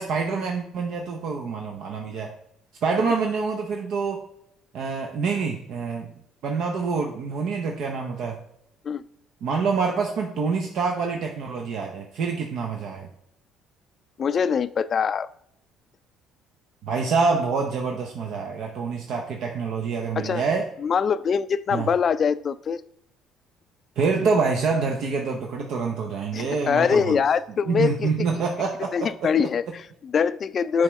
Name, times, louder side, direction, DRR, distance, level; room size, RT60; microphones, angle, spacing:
voice 1, 0.0-2.3 2.8-4.2 4.7-6.1 6.4-8.4 9.4-13.1 16.8-20.7 21.7-21.9 24.0-27.2 27.7-29.3, right 4 dB, 65° right, 2 dB, 0.7 m, -26 dB
voice 2, 14.2-15.3 20.2-20.4 20.8-22.8 26.3-28.4 28.9-30.8, left 6 dB, 40° left, 15 dB, 0.3 m, -23 dB
7.1 x 4.9 x 3.1 m, 0.75 s
cardioid pair, 110°, 0 cm